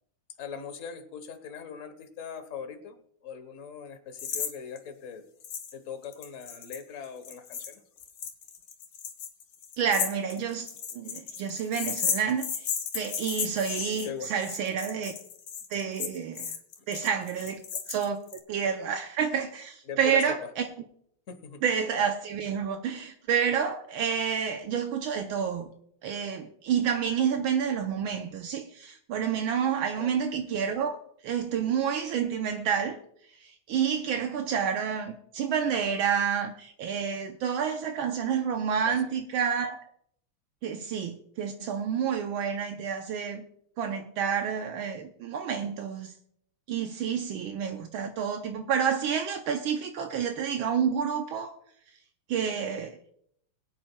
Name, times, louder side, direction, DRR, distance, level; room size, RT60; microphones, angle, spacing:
voice 1, 0.4-3.0 3.2-5.2 5.7-7.8 14.0-14.3 17.4-17.5 19.9-20.4 21.3-21.6 30.0-30.2 38.9-39.0, left 6 dB, 45° left, 1.2 m, -40 dB
sound 1, 4.2-4.5 4.8-4.9 5.4-5.7 6.0-18.4, left 7 dB, 80° left, 2.0 m, -34 dB
voice 2, 9.8-10.7 10.9-12.7 12.9-15.1 15.7-16.5 16.9-18.2 18.5-20.6 21.6-25.7 26.0-31.0 31.2-33.0 33.4-39.8 40.6-43.4 43.8-46.1 46.7-51.6 52.3-53.0, right 7 dB, 75° right, 1.5 m, -29 dB
22.0 x 8.7 x 2.2 m
omnidirectional pair, 2.4 m